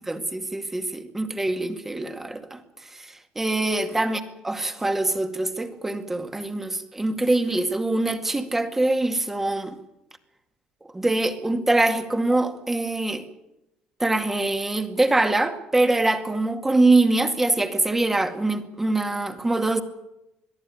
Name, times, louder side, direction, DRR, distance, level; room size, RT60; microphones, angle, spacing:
voice 1, 0.1-2.6 2.9-9.8 10.9-13.2 14.0-19.8, right 2 dB, 10° right, 2.2 m, -24 dB
22.5 x 14.0 x 9.7 m
cardioid pair, 125°, 3 cm